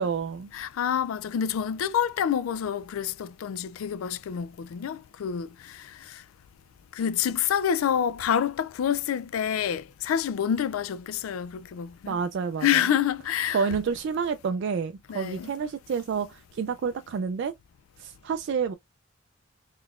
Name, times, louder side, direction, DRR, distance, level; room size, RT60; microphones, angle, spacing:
voice 1, 0.0-0.5 12.1-12.8 13.5-17.6 18.0-18.7, right 6 dB, 60° right, 0.3 m, -29 dB
voice 2, 0.5-6.2 6.9-12.2 12.6-13.7 15.1-15.5, left 9 dB, 85° left, 0.3 m, -28 dB
3.9 x 3.1 x 2.4 m
head